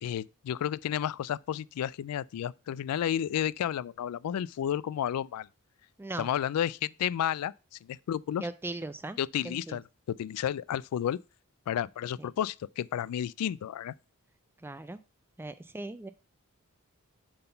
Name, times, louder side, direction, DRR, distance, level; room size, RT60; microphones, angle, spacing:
voice 1, 0.0-5.5 6.2-7.5 7.8-8.5 9.2-11.2 11.7-13.9, left 10 dB, 75° left, 0.3 m, -32 dB
voice 2, 8.4-9.2 9.4-9.8 12.2-12.3 14.6-15.0 15.4-16.1, right 2 dB, 10° right, 0.3 m, -38 dB
7.8 x 3.9 x 5.5 m
head